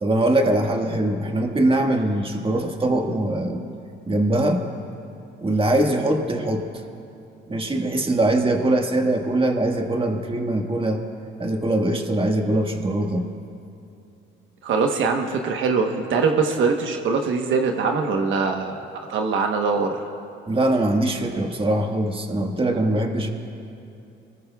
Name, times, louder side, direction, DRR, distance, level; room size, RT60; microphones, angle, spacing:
voice 1, 0.0-3.6 4.1-4.7 5.4-6.7 7.5-11.0 11.4-13.3 20.5-23.3, right 1 dB, 25° right, 2 dB, 1.6 m, -22 dB
voice 2, 14.6-18.8 19.1-20.0, right 4 dB, 75° right, 3 dB, 1.1 m, -22 dB
26.0 x 20.5 x 2.4 m, 2.7 s
cardioid pair, 90°, 20 cm